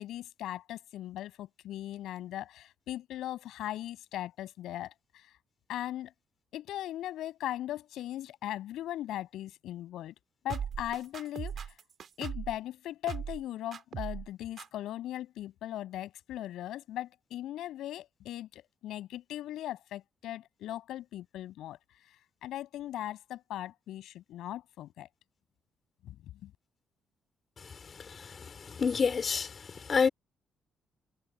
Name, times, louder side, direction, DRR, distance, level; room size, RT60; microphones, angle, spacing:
voice 1, 0.0-4.9 5.7-6.1 6.5-10.1 10.4-11.5 12.2-21.8 22.4-25.1 26.0-26.2 26.4-26.5, left 13 dB, 85° left, 7.6 m, -39 dB
sound 1, 10.5-12.6 13.1-13.4 13.7-14.3 14.6-14.7, right 7 dB, 55° right, 5.4 m, -38 dB
voice 2, 28.7-29.5 29.9-30.1, left 5 dB, 40° left, 4.8 m, -26 dB
cardioid pair, 90°, 0 cm